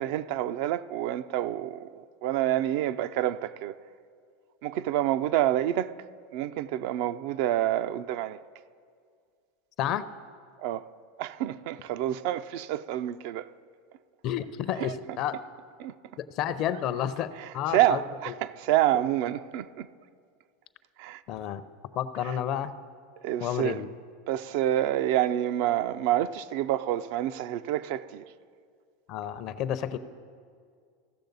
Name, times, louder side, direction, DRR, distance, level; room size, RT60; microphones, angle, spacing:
voice 1, 0.0-3.8 4.6-5.9 6.3-8.4 10.6-10.9 11.2-13.5 14.8-14.9 15.8-15.9 17.4-19.9 21.0-21.2 23.2-23.9 24.3-28.2, right 13 dB, 65° right, 0.3 m, -28 dB
voice 2, 14.2-15.4 16.2-18.0 18.3-18.4 21.3-21.6 22.0-22.8 23.4-23.9 29.1-30.0, left 10 dB, 50° left, 0.5 m, -30 dB
15.5 x 6.5 x 4.0 m
hypercardioid pair, 95°, 0 cm